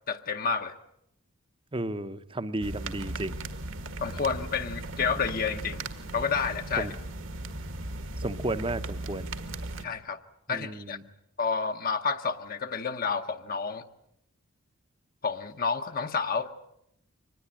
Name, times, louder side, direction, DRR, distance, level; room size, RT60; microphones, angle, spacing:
voice 1, 0.1-0.7 4.0-5.8 6.1-6.9 9.8-10.2 10.5-11.0 11.4-13.8 15.2-16.7, left 5 dB, 45° left, 6 dB, 0.9 m, -30 dB
voice 2, 1.7-3.3 6.8-6.9 8.2-9.3 10.5-11.0, right 1 dB, 25° right, 13 dB, 0.9 m, -33 dB
sound 1, 2.6-9.8, right 2 dB, 65° right, 1.9 m, -37 dB
24.5 x 20.0 x 8.9 m, 0.78 s
head